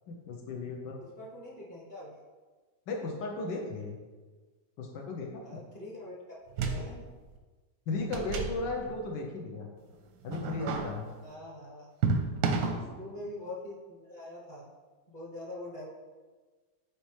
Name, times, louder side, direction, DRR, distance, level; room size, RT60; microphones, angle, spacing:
voice 1, 0.3-1.0 2.9-4.0 4.8-5.6 7.9-9.7 10.2-11.1 12.4-12.8, left 3 dB, 85° left, 0 dB, 1.4 m, -35 dB
voice 2, 1.0-2.2 5.4-6.4 6.6-7.0 11.2-11.9 12.8-14.7 15.1-15.9, left 1 dB, 35° left, -4 dB, 1.0 m, -44 dB
sound 1, 6.5-7.1 7.3-7.4 7.9-9.1 10.2-10.9 12.0-12.8, right 4 dB, 85° right, 1.4 m, -31 dB
8.3 x 4.4 x 3.2 m, 1.4 s
omnidirectional pair, 1.9 m